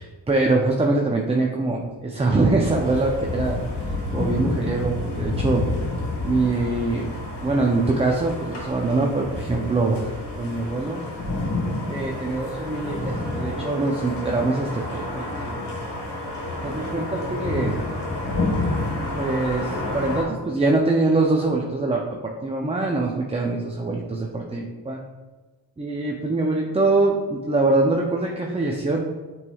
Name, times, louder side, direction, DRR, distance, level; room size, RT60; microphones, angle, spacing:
voice 1, 0.0-3.6 4.1-5.7 6.2-7.1 7.4-10.1 10.4-11.0 11.9-15.6 16.6-17.8 19.2-25.0 25.8-29.0, right 2 dB, 15° right, 0 dB, 0.4 m, -23 dB
sound 1, 2.6-20.2, left 2 dB, 65° left, 1.3 m, -29 dB
5.8 x 3.2 x 2.3 m, 1.3 s
cardioid pair, 55°, 44 cm